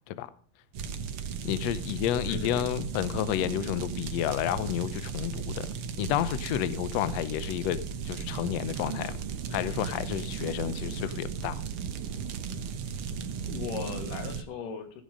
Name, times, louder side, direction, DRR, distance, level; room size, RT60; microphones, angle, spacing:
sound 1, 0.7-14.4, right 6 dB, 80° right, 1.2 m, -36 dB
voice 1, 1.4-5.7 6.0-9.2 9.5-11.6, left 12 dB, 90° left, 1.4 m, -30 dB
voice 2, 2.2-2.7 13.5-15.0, left 6 dB, 70° left, 3.1 m, -37 dB
16.0 x 8.7 x 5.2 m
omnidirectional pair, 4.1 m